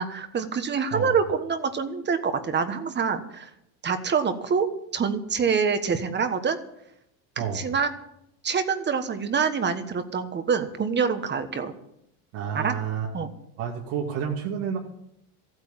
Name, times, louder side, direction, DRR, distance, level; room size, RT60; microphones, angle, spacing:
voice 1, 0.0-3.5 3.8-4.7 4.9-6.6 7.4-7.9 8.4-11.7 12.5-12.7 13.1-13.3, right 6 dB, 25° right, 9 dB, 1.4 m, -26 dB
voice 2, 12.3-13.1 13.6-14.8, right 7 dB, 70° right, -2 dB, 2.5 m, -29 dB
15.0 x 9.1 x 7.4 m, 0.79 s
cardioid pair, 135°, 41 cm